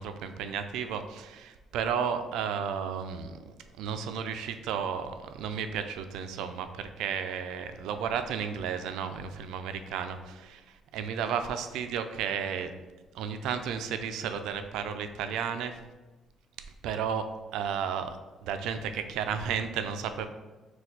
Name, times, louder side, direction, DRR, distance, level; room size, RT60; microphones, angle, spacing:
voice 1, 0.0-3.4 3.8-10.6 10.9-12.7 13.1-15.8 16.8-20.3, right 7 dB, 90° right, 8 dB, 0.3 m, -33 dB
4.2 x 2.3 x 3.9 m, 1.2 s
cardioid pair, 145°, 0 cm